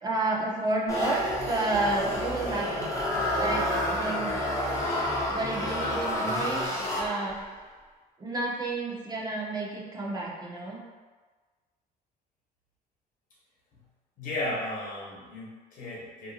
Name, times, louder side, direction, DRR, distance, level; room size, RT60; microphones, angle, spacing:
voice 1, 0.0-2.9 3.4-3.6 3.9-4.4 5.3-6.7 6.9-7.4 8.2-10.8, right 2 dB, 25° right, -3 dB, 0.6 m, -30 dB
sound 1, 0.9-7.5, left 1 dB, 20° left, 0.6 m, -29 dB
voice 2, 14.2-16.3, left 1 dB, 50° left, -6 dB, 1.0 m, -35 dB
2.7 x 2.2 x 2.6 m, 1.4 s
cardioid pair, 110°, 17 cm